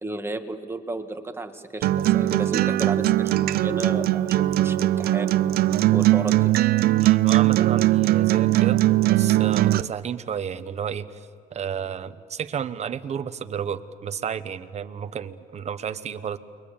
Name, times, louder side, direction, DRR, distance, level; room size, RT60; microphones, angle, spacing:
voice 1, 0.0-5.3 5.9-6.5, right 2 dB, 15° right, 6 dB, 1.7 m, -33 dB
Acoustic guitar, 1.8-9.8, right 15 dB, 65° right, 0.6 m, -20 dB
voice 2, 7.0-16.4, right 8 dB, 40° right, 11 dB, 1.1 m, -32 dB
29.5 x 23.0 x 7.3 m, 2.2 s
cardioid pair, 110°, 17 cm